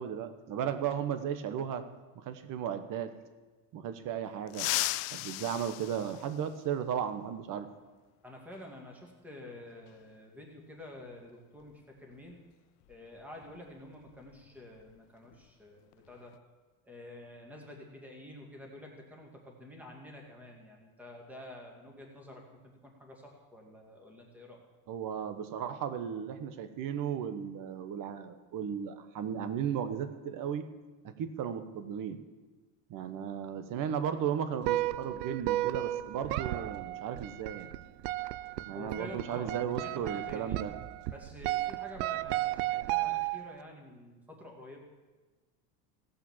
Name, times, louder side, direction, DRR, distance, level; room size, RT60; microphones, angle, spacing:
voice 1, 0.0-1.8 2.1-3.1 3.7-4.7 5.1-7.7 24.9-30.6 31.0-32.2 32.9-37.7 38.6-40.7, right 8 dB, 40° right, 10 dB, 1.1 m, -35 dB
sound 1, 4.5-6.9 8.5-8.6 9.9-10.0 11.6-11.7 12.1-12.3 12.8-15.0 15.2-15.5 15.9-16.4, left 20 dB, 60° left, 0.5 m, -37 dB
voice 2, 8.2-12.4 12.9-16.3 16.8-22.4 22.8-24.6 33.1-33.3 38.7-40.6 41.1-44.8, left 1 dB, 5° right, 0 dB, 2.2 m, -49 dB
sound 2, 34.6-43.6, right 16 dB, 75° right, 0.6 m, -34 dB
17.0 x 5.7 x 7.3 m, 1.3 s
cardioid pair, 140°, 49 cm